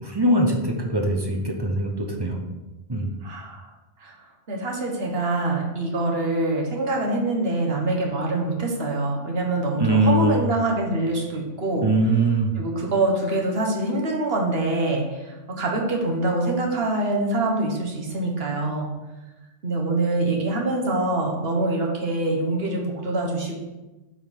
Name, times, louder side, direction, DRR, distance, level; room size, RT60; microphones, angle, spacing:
voice 1, 0.0-2.5 2.9-3.2 9.8-10.5 11.8-12.6, right 1 dB, 25° right, 2 dB, 0.8 m, -22 dB
voice 2, 3.2-3.7 4.0-4.1 4.5-11.9 12.6-18.9 19.6-23.6, right 2 dB, 65° right, 0 dB, 1.5 m, -25 dB
7.2 x 3.9 x 5.2 m, 1.1 s
omnidirectional pair, 1.1 m